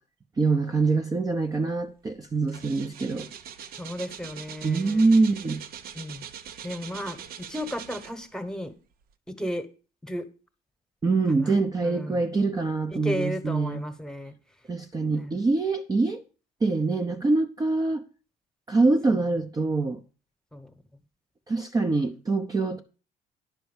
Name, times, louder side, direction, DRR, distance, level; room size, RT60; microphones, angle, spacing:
voice 1, 0.4-3.3 4.6-5.6 11.0-13.8 14.7-16.2 16.6-18.0 18.7-20.0 21.5-22.8, right 3 dB, 20° right, 0.7 m, -24 dB
sound 1, 1.7-1.9 2.2-8.5 9.0-9.1, right 8 dB, 60° right, 0.8 m, -42 dB
voice 2, 3.8-5.0 5.9-6.3 6.6-7.2 7.5-8.7 9.4-9.7 10.0-10.2 11.3-11.5 11.8-12.2 12.9-14.3 15.1-15.4 20.5-20.7, equal, 5° left, 1.2 m, -34 dB
10.5 x 4.5 x 7.3 m
cardioid pair, 110°, 17 cm